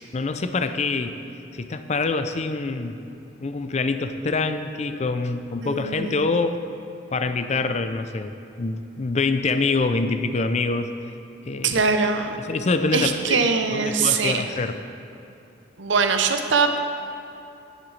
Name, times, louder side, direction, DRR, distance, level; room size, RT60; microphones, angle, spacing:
voice 1, 0.1-1.2 1.6-3.0 3.4-6.6 7.1-10.9 11.4-11.7 12.4-13.4 13.7-14.8, left 3 dB, 35° left, 9 dB, 0.4 m, -25 dB
voice 2, 5.6-6.3 11.6-12.4 12.9-14.5 15.8-16.8, right 4 dB, 75° right, 6 dB, 0.7 m, -22 dB
11.0 x 11.0 x 3.2 m, 2.8 s
head